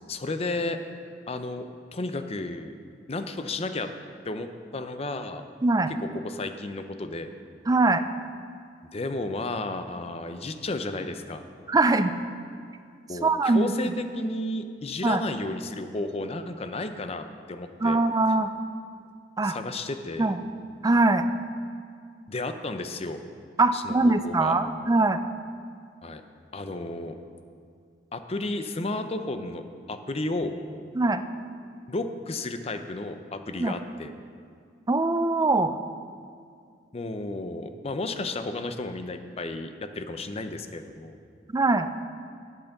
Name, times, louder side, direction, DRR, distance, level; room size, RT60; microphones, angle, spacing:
voice 1, 0.1-0.8 1.3-1.7 1.9-2.7 3.1-3.9 4.3-4.5 4.7-5.4 6.0-7.3 8.9-11.4 13.1-18.0 19.4-20.3 22.3-23.2 23.7-24.6 26.0-26.2 26.5-27.1 28.1-30.5 31.9-34.1 36.9-41.2, left 2 dB, 35° left, 8 dB, 0.6 m, -33 dB
voice 2, 7.7-8.1 11.7-12.1 13.2-13.7 15.0-15.2 17.8-18.5 19.4-19.6 20.2-20.4 20.8-21.3 23.6-25.2 31.0-31.2 33.6-33.7 34.9-35.8 41.5-41.9, right 2 dB, 20° right, 10 dB, 0.4 m, -22 dB
8.8 x 8.5 x 6.6 m, 2.3 s
head